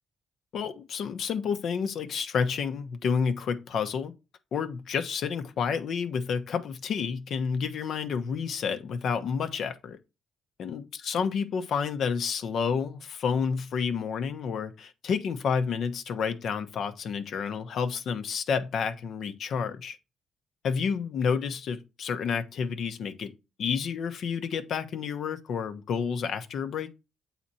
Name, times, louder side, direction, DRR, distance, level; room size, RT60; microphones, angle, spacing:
voice 1, 0.5-4.1 4.5-10.0 10.6-20.0 20.6-23.3 23.6-26.9, left 6 dB, 65° left, 0.9 m, -30 dB
7.5 x 4.1 x 4.2 m
cardioid pair, 90°, 0 cm